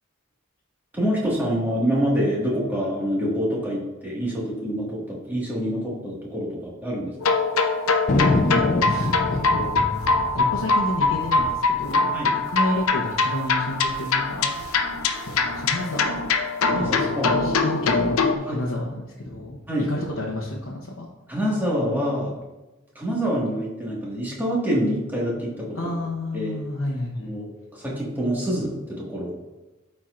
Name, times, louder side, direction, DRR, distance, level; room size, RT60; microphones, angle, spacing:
voice 1, 0.9-7.1 12.1-12.4 16.7-17.7 18.0-18.6 19.7-19.9 21.3-22.3 23.0-26.0 26.3-26.6 27.2-29.4, equal, 10° right, -5 dB, 1.7 m, -26 dB
sound 1, 7.2-18.3, left 3 dB, 85° left, 0.6 m, -23 dB
Thunder, 8.1-12.9 13.2-13.3 13.5-14.0 14.5-15.7, left 2 dB, 35° left, 0.4 m, -27 dB
voice 2, 8.2-9.8 10.3-14.6 15.3-16.2 16.8-21.1 25.7-27.3, left 1 dB, 65° left, -3 dB, 0.9 m, -31 dB
13.0 x 4.4 x 2.5 m, 1.1 s
head